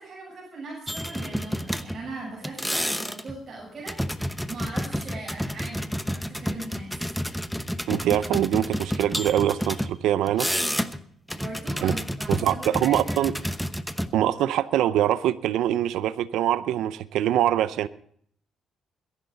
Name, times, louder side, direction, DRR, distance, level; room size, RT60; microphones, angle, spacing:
voice 1, 0.0-7.0 11.3-13.2, right 3 dB, 40° right, -4 dB, 7.5 m, -40 dB
sound 1, 0.9-2.1 2.4-3.4 3.9-9.9 10.3-11.0 11.3-14.1, equal, ahead, 1.0 m, -30 dB
voice 2, 7.9-10.5 11.8-11.9 12.3-13.3 14.1-17.9, right 12 dB, 85° right, 15 dB, 0.6 m, -24 dB
21.5 x 11.0 x 4.0 m, 0.62 s
cardioid pair, 90°, 0 cm